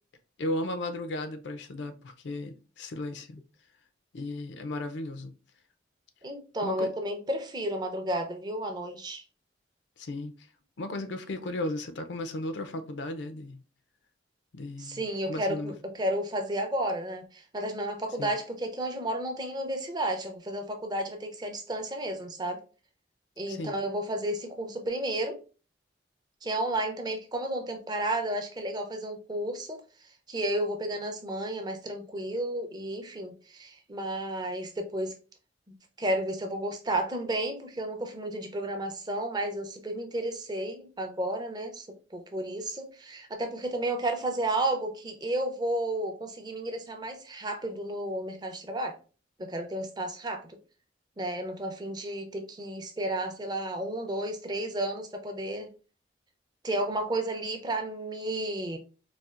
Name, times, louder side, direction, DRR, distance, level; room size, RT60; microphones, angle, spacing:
voice 1, 0.4-3.4 4.1-5.3 6.6-6.9 10.0-10.3 10.8-13.6 14.5-15.0 15.3-15.7 18.2-18.3 23.5-23.7, left 1 dB, 75° left, 0.5 m, -35 dB
voice 2, 6.2-9.2 14.8-22.6 23.4-25.4 26.4-29.8 30.3-35.1 35.7-49.0 49.4-50.6 51.2-55.7 56.6-58.8, right 1 dB, 25° right, 0.5 m, -32 dB
4.1 x 2.4 x 2.4 m
head